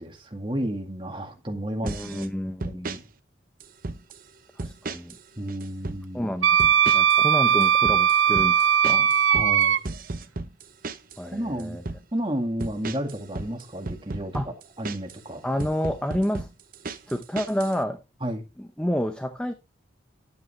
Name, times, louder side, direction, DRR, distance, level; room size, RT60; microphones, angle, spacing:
voice 1, 0.0-3.0 5.4-6.3 9.3-9.8 11.3-11.8 12.1-14.4 14.8-15.4 18.2-18.4, right 1 dB, 25° right, 2.1 m, -32 dB
voice 2, 1.8-2.9 4.6-5.2 6.1-6.6 6.9-9.1 11.2-11.8 14.3-14.5 15.4-16.5 17.1-18.0 18.6-19.5, equal, 5° left, 0.7 m, -29 dB
sound 1, 1.9-2.3 2.6-3.0 3.6-4.2 4.6-5.2 5.5-6.0 6.6-7.2 7.5-11.2 11.6-12.0 12.6-15.2 15.6-17.8, right 3 dB, 45° right, 0.8 m, -35 dB
Wind instrument woodwind instrument, 6.4-9.8, right 9 dB, 80° right, 0.6 m, -19 dB
10.5 x 8.5 x 3.3 m
head